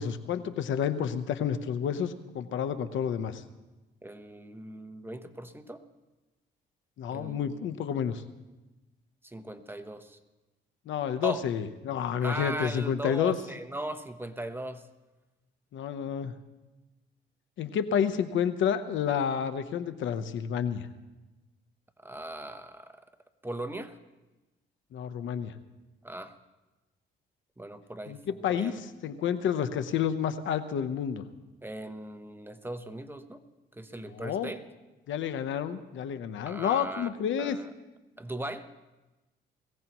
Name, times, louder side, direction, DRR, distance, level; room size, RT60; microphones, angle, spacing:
voice 1, 0.0-3.4 7.0-8.2 10.9-13.4 15.7-16.3 17.6-20.9 24.9-25.5 28.1-31.3 34.1-34.5 35.1-37.6, left 8 dB, 75° left, 10 dB, 1.0 m, -30 dB
voice 2, 4.0-5.8 7.1-7.7 9.2-10.2 11.2-11.4 12.2-14.8 22.0-23.0 23.4-24.0 26.0-26.4 27.6-28.8 31.6-33.4 33.7-34.6 36.5-37.7 38.2-38.7, right 1 dB, 10° right, 9 dB, 1.0 m, -39 dB
21.5 x 16.5 x 3.1 m, 1.1 s
cardioid pair, 90°, 20 cm